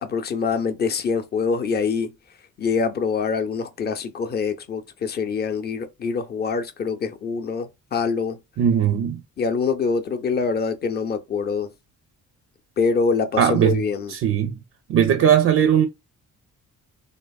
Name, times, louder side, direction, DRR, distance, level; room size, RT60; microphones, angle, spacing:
voice 1, 0.0-2.1 2.6-8.4 9.4-11.7 12.8-14.1, left 5 dB, 35° left, 0.5 m, -25 dB
voice 2, 8.6-9.2 13.4-13.8 14.1-14.6 14.9-15.9, right 9 dB, 50° right, 0.4 m, -18 dB
3.3 x 2.0 x 2.3 m
cardioid pair, 90°, 30 cm